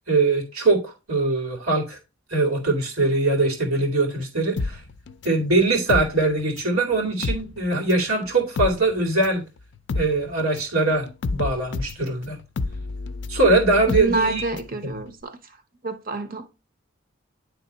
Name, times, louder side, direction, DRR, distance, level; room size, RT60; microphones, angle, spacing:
voice 1, 0.1-2.0 2.3-4.8 5.2-9.4 9.9-12.4 13.3-14.4, right 2 dB, 90° right, 2.4 m, -22 dB
sound 1, 4.6-6.8 7.1-14.8 15.1-15.2, left 3 dB, 55° left, 0.4 m, -30 dB
voice 2, 13.9-15.5 15.8-16.5, right 2 dB, 45° right, 0.9 m, -28 dB
9.9 x 3.5 x 4.0 m
head